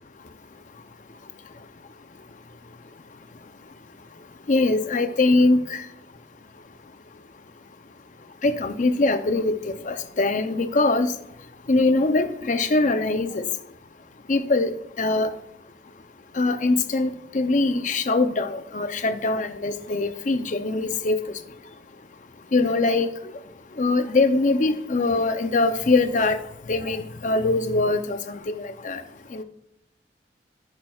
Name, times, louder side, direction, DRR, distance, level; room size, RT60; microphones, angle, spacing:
voice 1, 4.5-5.8 8.4-9.5 9.9-11.1 11.7-13.4 14.3-14.7 15.0-15.3 16.4-21.2 22.5-23.1 23.8-26.4 26.7-29.0 29.3-29.4, left 2 dB, 45° left, 10 dB, 0.6 m, -22 dB
10.5 x 10.5 x 2.4 m, 0.82 s
head